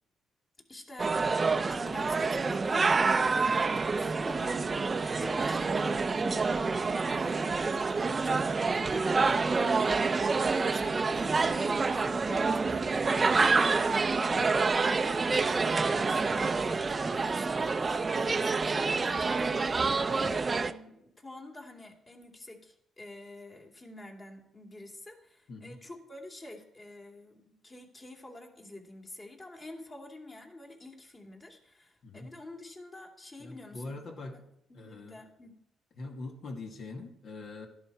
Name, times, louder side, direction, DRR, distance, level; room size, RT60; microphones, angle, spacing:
voice 1, 0.7-1.1 1.7-6.4 6.7-34.1 34.7-35.6, left 2 dB, 30° left, 2 dB, 2.7 m, -48 dB
sound 1, 1.0-20.7, right 4 dB, 30° right, 0.6 m, -27 dB
voice 2, 25.5-25.8 32.0-32.3 33.4-34.4 34.7-35.2 36.0-37.7, left 3 dB, 60° left, 2 dB, 2.3 m, -43 dB
12.5 x 11.0 x 4.6 m, 0.77 s
cardioid pair, 90°, 0 cm